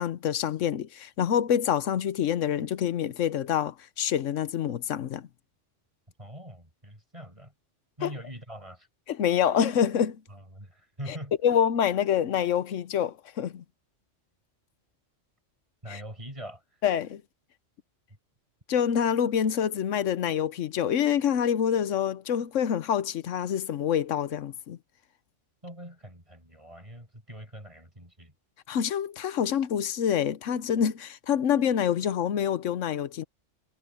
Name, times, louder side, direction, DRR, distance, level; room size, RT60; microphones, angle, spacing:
voice 1, 0.0-5.3 8.0-8.1 9.1-10.2 11.1-11.2 11.4-13.6 15.9-16.0 16.8-17.2 18.7-24.8 28.7-33.2, left 9 dB, 85° left, 1.2 m, -26 dB
voice 2, 6.2-7.5 8.0-8.9 10.3-11.3 15.8-16.6 25.6-28.3, equal, 25° right, 6.7 m, -43 dB
omnidirectional pair, 1.2 m